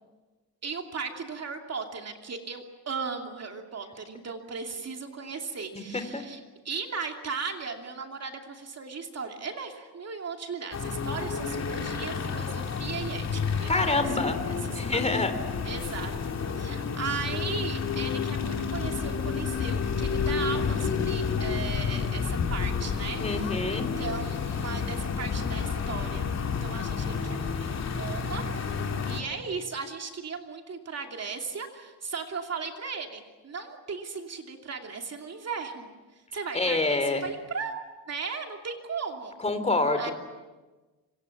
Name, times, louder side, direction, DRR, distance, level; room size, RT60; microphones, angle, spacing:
voice 1, 0.6-13.7 14.2-15.0 15.6-16.1 16.6-26.3 26.6-35.9 36.3-37.7 38.1-39.3 40.0-40.1, right 5 dB, 40° right, 3 dB, 2.8 m, -37 dB
voice 2, 5.7-6.2 13.7-14.4 14.7-15.3 23.2-23.9 36.5-37.2 39.4-40.1, left 2 dB, 15° left, 8 dB, 3.3 m, -27 dB
sound 1, 10.7-29.2, left 6 dB, 40° left, 2.7 m, -30 dB
26.5 x 26.0 x 7.3 m, 1.2 s
cardioid pair, 135°, 40 cm